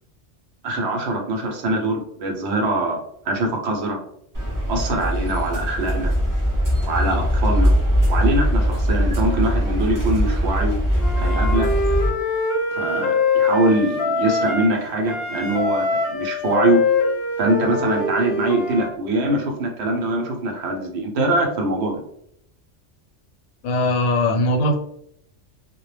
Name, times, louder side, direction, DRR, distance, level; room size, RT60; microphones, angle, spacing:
voice 1, 0.6-3.0 3.2-4.0 4.7-6.1 6.9-7.7 8.1-10.8 11.2-11.7 12.7-16.8 17.4-22.0, right 2 dB, 65° right, 1 dB, 0.8 m, -23 dB
sound 1, 4.3-12.1, equal, 25° right, 0.5 m, -21 dB
Wind instrument woodwind instrument, 11.0-14.8 15.1-18.9, left 3 dB, 60° left, 0.7 m, -23 dB
voice 2, 23.6-24.8, left 1 dB, 85° left, 1 dB, 1.0 m, -20 dB
2.1 x 2.1 x 3.1 m, 0.72 s
omnidirectional pair, 1.3 m